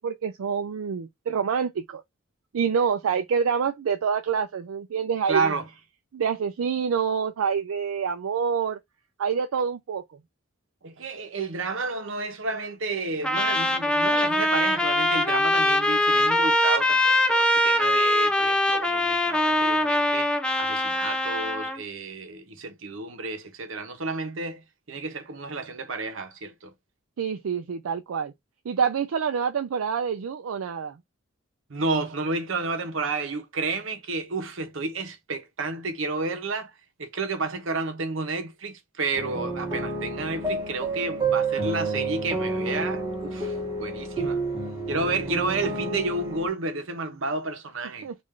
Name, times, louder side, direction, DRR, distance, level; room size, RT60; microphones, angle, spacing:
voice 1, 0.0-2.0 2.5-5.5 6.1-8.8 9.2-10.0 27.2-28.3 28.7-31.0 48.0-48.1, right 6 dB, 90° right, 0.4 m, -27 dB
voice 2, 5.3-5.7 10.8-20.3 20.6-24.6 24.9-26.7 31.7-44.4 44.9-48.1, right 3 dB, 70° right, 0.9 m, -31 dB
Trumpet, 13.2-21.8, left 1 dB, 5° left, 0.3 m, -22 dB
sound 1, 39.1-46.5, right 3 dB, 20° right, 1.1 m, -29 dB
3.6 x 2.5 x 3.2 m
head